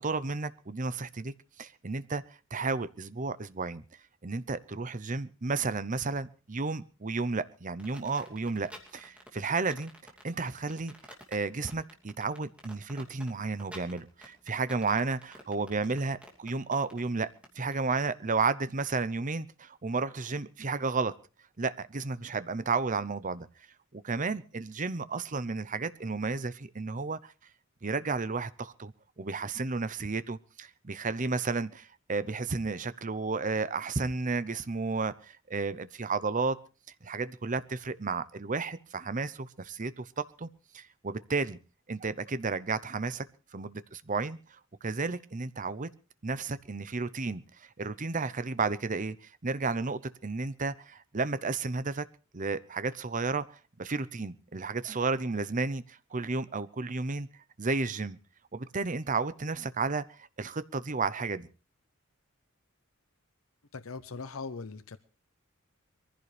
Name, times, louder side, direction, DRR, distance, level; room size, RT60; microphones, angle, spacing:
voice 1, 0.0-2.2 2.5-3.8 4.2-9.9 10.2-10.9 11.3-21.1 21.6-23.5 23.9-27.3 27.8-36.6 37.0-40.5 40.7-41.6 41.9-43.3 43.5-45.9 46.2-52.1 52.3-57.3 57.6-58.2 58.5-61.5, right 4 dB, 40° right, 0.8 m, -32 dB
sound 1, 7.8-17.8, equal, 5° right, 2.8 m, -50 dB
voice 2, 63.7-65.0, left 4 dB, 80° left, 0.8 m, -40 dB
23.0 x 15.5 x 3.4 m
head